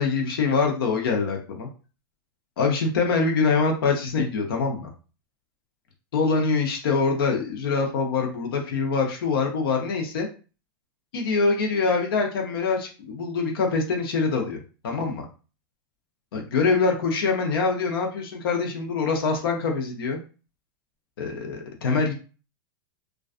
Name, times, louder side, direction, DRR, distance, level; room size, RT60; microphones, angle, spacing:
voice 1, 0.0-1.7 2.6-4.9 6.1-10.3 11.1-14.6 14.8-15.2 16.3-20.2 21.2-22.1, left 4 dB, 75° left, 2 dB, 0.6 m, -24 dB
2.3 x 2.3 x 2.4 m, 0.35 s
hypercardioid pair, 120°, 12 cm